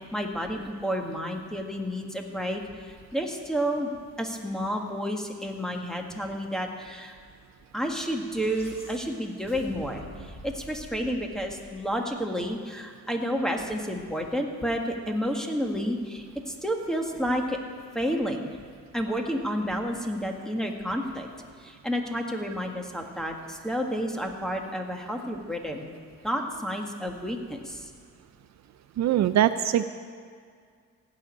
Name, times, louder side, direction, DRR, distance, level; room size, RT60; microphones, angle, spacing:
voice 1, 0.1-2.6 3.1-3.9 4.2-7.1 7.7-17.6 18.0-18.6 18.9-21.3 21.6-25.8 26.2-27.9, equal, ahead, 2 dB, 1.8 m, -30 dB
sound 1, 8.0-12.3, left 1 dB, 20° left, 4.4 m, -47 dB
voice 2, 29.0-29.8, right 11 dB, 65° right, 12 dB, 0.5 m, -22 dB
15.5 x 6.4 x 9.9 m, 2.1 s
cardioid pair, 90°, 30 cm